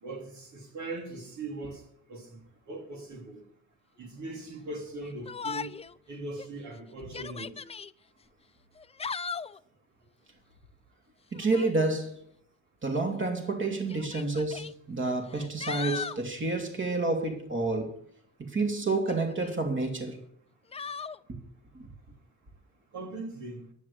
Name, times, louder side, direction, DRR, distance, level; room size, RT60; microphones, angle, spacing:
voice 1, 0.0-1.8 2.1-2.4 2.7-3.4 4.0-5.7 6.1-7.5 22.9-23.7, right 2 dB, 70° right, 3.0 m, -40 dB
Yell, 5.3-5.9 6.4-6.5 7.0-7.9 8.8-9.6 11.3-11.8 12.9-13.0 13.9-14.7 15.3-16.2 18.9-19.5 20.7-21.2, left 5 dB, 20° left, 0.4 m, -38 dB
voice 2, 11.3-12.2 12.8-17.9 18.4-20.2 21.7-21.9, right 3 dB, 40° right, 2.8 m, -29 dB
11.0 x 8.2 x 8.6 m
cardioid pair, 90°, 30 cm